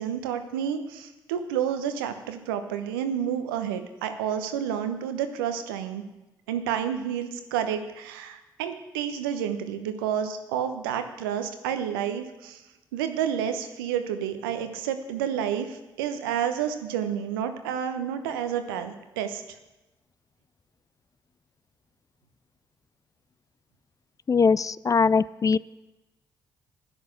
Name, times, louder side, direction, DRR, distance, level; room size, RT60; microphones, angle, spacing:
voice 1, 0.0-6.0 6.5-12.6 12.9-19.4, right 9 dB, 80° right, 8 dB, 1.0 m, -30 dB
voice 2, 24.3-25.6, left 5 dB, 30° left, 20 dB, 0.4 m, -21 dB
12.0 x 10.0 x 6.4 m, 1.0 s
figure-of-eight pair, 40°, 11 cm